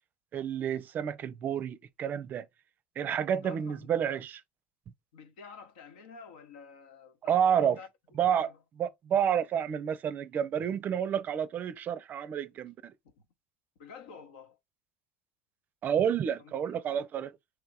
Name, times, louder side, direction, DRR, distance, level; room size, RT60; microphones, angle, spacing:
voice 1, 0.3-2.5 3.0-4.4 7.3-7.8 8.2-8.5 8.8-12.9 15.8-17.3, right 8 dB, 40° right, 0.5 m, -29 dB
voice 2, 3.3-3.9 5.1-7.9 8.3-8.6 13.0-13.1 13.8-14.6 16.4-17.1, left 5 dB, 75° left, 1.0 m, -50 dB
3.5 x 3.1 x 4.7 m
hypercardioid pair, 75°, 5 cm